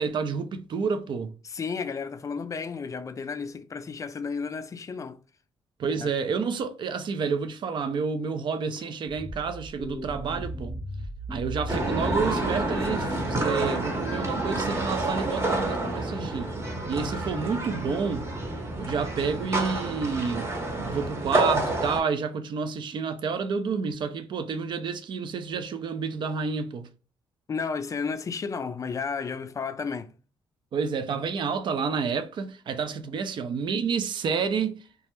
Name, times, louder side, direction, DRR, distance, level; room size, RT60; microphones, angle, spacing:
voice 1, 0.0-1.3 5.8-10.7 11.3-16.5 16.9-18.3 18.8-20.5 20.9-26.9 30.7-34.8, right 5 dB, 55° right, 0.4 m, -29 dB
voice 2, 1.5-5.2 5.9-6.1 27.5-30.1, left 5 dB, 35° left, 0.4 m, -32 dB
sound 1, 9.1-13.7, right 1 dB, ahead, 0.7 m, -37 dB
sound 2, 11.7-22.0, right 2 dB, 25° right, 0.9 m, -29 dB
2.3 x 2.0 x 2.9 m
cardioid pair, 75°, 10 cm